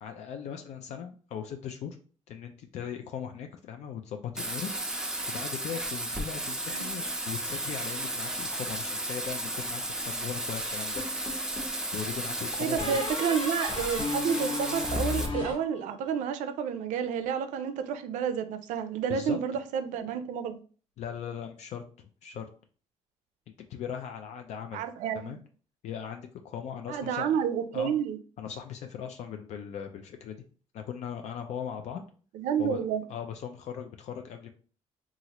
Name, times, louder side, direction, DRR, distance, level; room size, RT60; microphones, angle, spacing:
voice 1, 0.0-2.0 2.3-11.0 11.9-13.0 19.1-19.4 21.0-22.5 23.7-24.8 25.1-25.4 25.8-27.4 27.7-27.9 28.4-30.4 30.7-32.0 32.6-34.5, left 8 dB, 65° left, 0.4 m, -39 dB
Bathtub (filling or washing), 4.4-15.3, right 1 dB, 5° right, 0.5 m, -34 dB
sound 1, 11.0-11.8 12.8-16.3, left 3 dB, 40° left, 1.1 m, -35 dB
voice 2, 12.6-20.6 24.7-25.3 26.9-28.2 32.3-33.0, right 7 dB, 85° right, 0.4 m, -30 dB
3.0 x 2.4 x 2.8 m
cardioid pair, 100°, 12 cm